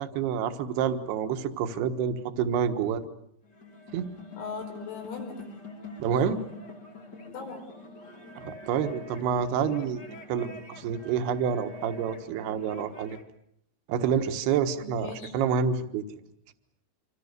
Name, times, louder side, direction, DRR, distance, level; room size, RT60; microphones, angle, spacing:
voice 1, 0.0-3.1 3.9-4.1 6.0-6.4 8.4-13.2 13.9-16.0, right 7 dB, 65° right, 8 dB, 2.9 m, -28 dB
sound 1, 3.4-13.3, left 2 dB, 50° left, 1.1 m, -45 dB
voice 2, 4.4-5.5 7.3-7.7 14.7-15.3, left 4 dB, 85° left, 3 dB, 7.7 m, -39 dB
28.0 x 26.0 x 6.7 m, 0.71 s
omnidirectional pair, 5.9 m